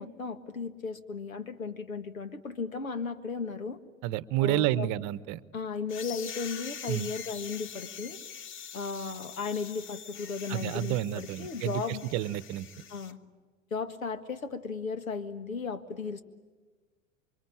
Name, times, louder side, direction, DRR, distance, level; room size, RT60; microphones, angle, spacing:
voice 1, 0.0-3.8 4.4-4.9 5.5-8.2 8.7-12.0 12.9-13.2 13.7-16.2, left 5 dB, 85° left, 11 dB, 1.8 m, -35 dB
voice 2, 4.0-5.4 6.9-7.1 10.5-12.6, right 14 dB, 45° right, 17 dB, 1.0 m, -30 dB
sound 1, 5.9-13.1, left 7 dB, 30° left, 1.1 m, -44 dB
28.0 x 24.5 x 8.7 m, 1.4 s
hypercardioid pair, 90°, 40 cm